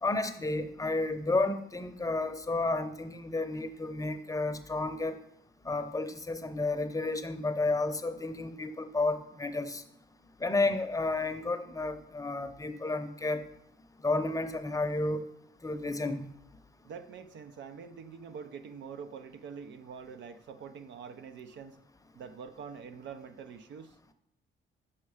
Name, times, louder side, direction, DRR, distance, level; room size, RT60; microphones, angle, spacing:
voice 1, 0.0-5.2 5.6-9.8 10.4-13.5 14.0-15.3 15.6-16.3, left 2 dB, 15° left, 0.7 m, -31 dB
voice 2, 16.8-21.8 22.1-23.9, right 6 dB, 65° right, 0.7 m, -45 dB
7.2 x 5.5 x 4.9 m
cardioid pair, 90°, 20 cm